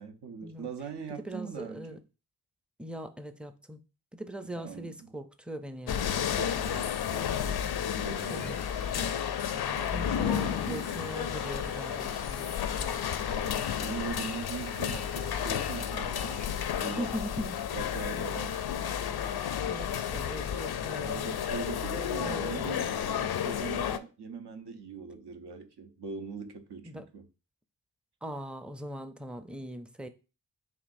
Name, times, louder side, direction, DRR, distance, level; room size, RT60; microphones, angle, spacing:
voice 1, 0.0-2.0 4.6-4.9 6.2-8.7 9.8-9.9 10.2-10.8 13.3-16.5 16.8-17.1 17.7-18.6 21.0-27.3, right 5 dB, 70° right, 0.9 m, -41 dB
voice 2, 1.1-2.0 2.8-3.8 4.1-6.2 6.5-6.7 8.3-8.6 9.5-13.1 17.0-17.6 19.7-21.3 22.2-22.6 26.8-27.1 28.2-30.1, equal, 5° right, 0.5 m, -40 dB
sound 1, 5.9-24.0, left 9 dB, 65° left, 0.5 m, -32 dB
Domestic sounds home sounds, 8.1-16.8, right 2 dB, 40° right, 1.0 m, -50 dB
7.0 x 2.6 x 2.6 m
cardioid pair, 55°, 41 cm